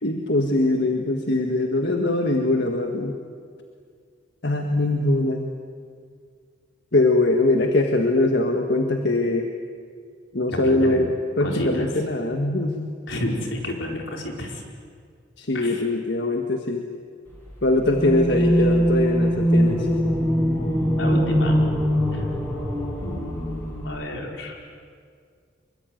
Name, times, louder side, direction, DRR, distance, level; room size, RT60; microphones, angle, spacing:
voice 1, 0.0-3.2 4.4-5.5 6.9-9.5 10.3-11.1 11.4-12.9 15.4-16.9 17.6-19.9, left 2 dB, 60° left, 3 dB, 1.7 m, -22 dB
voice 2, 10.5-11.1 11.4-11.9 13.1-14.6 15.5-15.8 20.9-21.6 22.1-22.2 23.0-24.6, left 1 dB, 80° left, 1 dB, 4.8 m, -30 dB
sound 1, 17.8-23.8, equal, 10° left, 7.1 m, -22 dB
26.5 x 23.5 x 9.4 m, 2.1 s
head